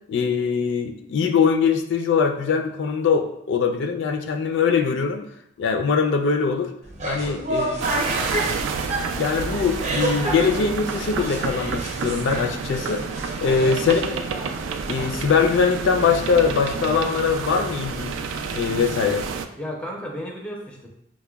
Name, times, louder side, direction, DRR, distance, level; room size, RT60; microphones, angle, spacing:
voice 1, 0.1-5.3 5.6-6.7 7.1-8.1 9.1-13.0 13.4-14.1 14.9-18.2 18.5-19.3, left 5 dB, 65° left, 5 dB, 0.3 m, -22 dB
sound 1, 6.8-15.9, right 1 dB, 40° right, 0.6 m, -30 dB
voice 2, 7.1-7.5 19.6-20.9, equal, 5° left, 0 dB, 0.5 m, -35 dB
sound 2, 7.8-19.5, right 5 dB, 80° right, 0.3 m, -30 dB
5.8 x 2.1 x 2.2 m, 0.75 s
head